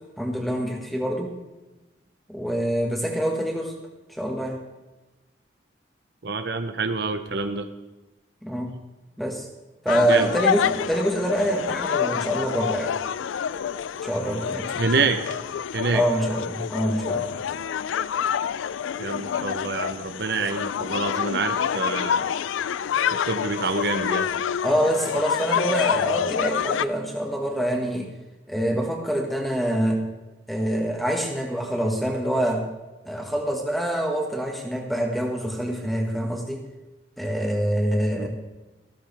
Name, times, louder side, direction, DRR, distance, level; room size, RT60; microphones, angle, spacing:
voice 1, 0.2-1.3 2.3-3.7 4.1-4.6 8.4-8.7 9.2-9.5 9.8-12.9 14.0-15.1 15.9-17.4 24.6-28.1 28.5-30.0 30.5-32.6 33.0-36.6 37.2-38.3, right 1 dB, ahead, 1 dB, 1.6 m, -25 dB
voice 2, 6.2-7.7 10.1-10.3 14.8-15.2 15.7-16.0 19.0-22.3 23.1-24.3 38.2-38.3, right 4 dB, 60° right, 8 dB, 0.7 m, -27 dB
sound 1, 9.9-26.8, left 8 dB, 85° left, 0.3 m, -27 dB
14.5 x 13.5 x 3.4 m, 1.1 s
head